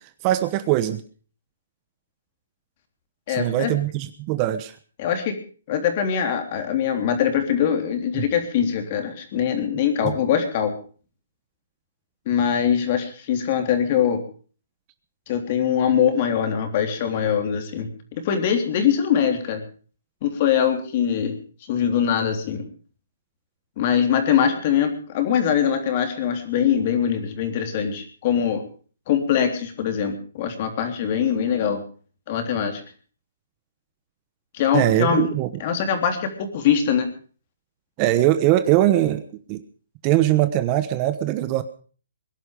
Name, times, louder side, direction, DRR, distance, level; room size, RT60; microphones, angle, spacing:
voice 1, 0.2-1.0 3.3-4.7 34.7-35.5 38.0-39.6 40.0-41.6, right 14 dB, 25° right, 12 dB, 1.0 m, -21 dB
voice 2, 3.3-3.7 5.0-5.3 5.7-10.7 12.3-14.2 15.3-19.6 20.2-21.4 21.7-22.6 23.8-28.6 29.1-31.8 32.3-32.8 34.5-35.3 35.6-37.1, left 8 dB, 35° left, 6 dB, 3.4 m, -22 dB
22.0 x 11.5 x 5.2 m, 0.41 s
hypercardioid pair, 155°, 0 cm